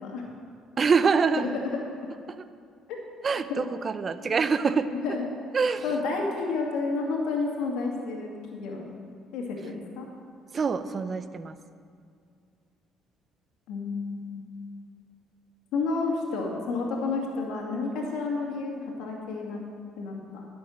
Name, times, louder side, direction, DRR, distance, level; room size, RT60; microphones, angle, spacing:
voice 1, 0.8-1.5 2.3-2.4 3.2-5.0 5.5-5.8 10.5-11.6, right 5 dB, 40° right, 12 dB, 0.6 m, -25 dB
voice 2, 1.4-1.8 3.5-3.6 4.2-4.4 4.9-5.3 5.8-8.9 9.3-10.1 13.7-14.5 15.7-19.6 20.0-20.4, left 4 dB, 75° left, 0 dB, 2.3 m, -30 dB
12.5 x 7.0 x 6.5 m, 2.3 s
supercardioid pair, 75°, 0 cm